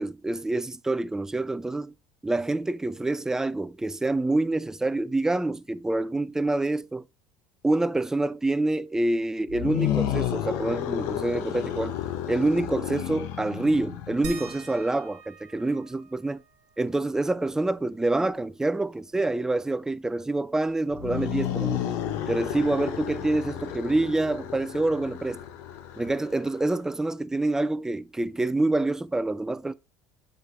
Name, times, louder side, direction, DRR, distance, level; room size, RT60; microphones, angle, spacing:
voice 1, 0.0-1.9 2.2-7.0 7.6-12.0 12.3-16.4 16.8-21.9 22.3-25.4 26.0-29.7, right 2 dB, 10° right, 0.4 m, -26 dB
sound 1, 9.5-14.7 20.9-26.6, left 11 dB, 70° left, 0.9 m, -32 dB
sound 2, 14.2-19.4 19.7-19.8 20.1-21.9 23.2-23.3 24.0-24.1, right 4 dB, 75° right, 1.3 m, -47 dB
7.8 x 5.1 x 3.0 m
hypercardioid pair, 75°, 5 cm